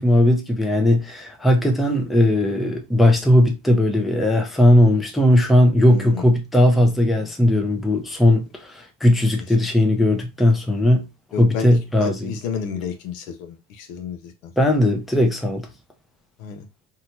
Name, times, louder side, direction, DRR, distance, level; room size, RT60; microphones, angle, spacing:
voice 1, 0.0-11.0 11.4-12.3 14.6-15.7, left 1 dB, ahead, 0.4 m, -18 dB
voice 2, 5.9-6.3 11.3-14.5 16.4-16.7, left 6 dB, 85° left, 0.8 m, -31 dB
2.8 x 2.3 x 2.9 m
supercardioid pair, 110°, 38 cm